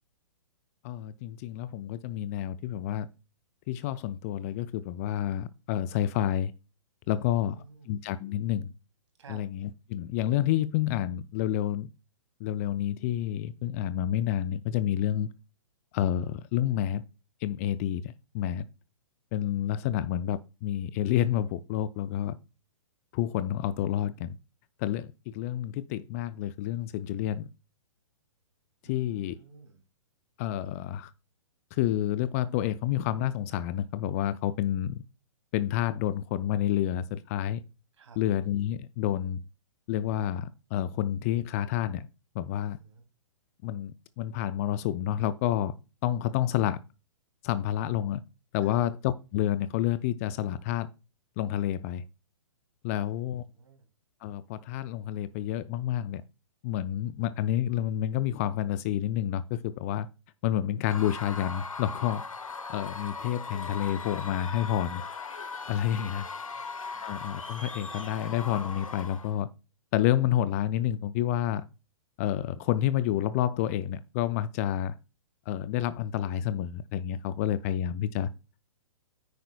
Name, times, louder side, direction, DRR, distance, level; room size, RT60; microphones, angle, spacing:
voice 1, 0.8-3.1 3.7-6.5 7.1-8.7 9.3-11.9 12.4-15.3 15.9-17.0 17.4-18.6 19.3-22.4 23.1-24.4 24.8-27.5 28.8-29.4 30.4-31.1 31.7-35.0 35.5-37.6 38.2-39.4 39.9-42.1 42.3-42.8 43.6-45.7 46.0-46.8 47.4-48.2 48.5-50.9 51.4-52.1 52.8-53.4 54.2-56.2 56.6-60.1 60.4-62.2 62.7-65.0 65.7-66.3 67.0-69.5 69.9-71.7 72.2-74.9 75.5-78.3, left 11 dB, 30° left, 0.4 m, -29 dB
voice 2, 7.1-7.9 9.2-9.4 28.8-29.8 38.0-38.2 42.6-43.0 48.6-48.8 53.0-53.1 53.4-53.9 65.8-66.6 66.9-67.0, right 5 dB, 60° right, 2.7 m, -53 dB
Screaming / Cheering / Crowd, 60.8-69.4, left 4 dB, 80° left, 0.9 m, -39 dB
9.3 x 9.2 x 2.2 m
figure-of-eight pair, 120°, 17 cm